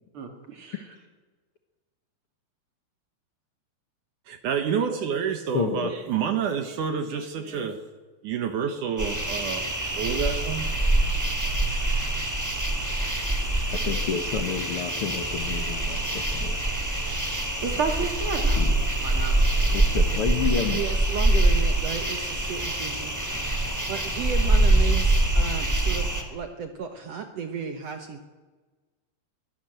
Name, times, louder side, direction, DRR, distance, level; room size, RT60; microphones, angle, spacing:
voice 1, 0.1-0.8 17.6-18.6 19.0-19.4, right 5 dB, 40° right, 5 dB, 2.4 m, -31 dB
voice 2, 0.7-1.0 5.5-5.9 13.7-16.6 18.6-18.7 19.7-20.8, left 7 dB, 75° left, 6 dB, 1.3 m, -30 dB
voice 3, 4.3-7.8 8.2-9.7 9.9-10.7, right 7 dB, 65° right, 8 dB, 2.2 m, -28 dB
sound 1, 9.0-26.2, right 1 dB, 5° right, 1.4 m, -24 dB
voice 4, 20.7-23.1 23.9-28.2, right 7 dB, 85° right, 6 dB, 1.4 m, -34 dB
24.0 x 16.0 x 7.8 m, 1.4 s
omnidirectional pair, 4.6 m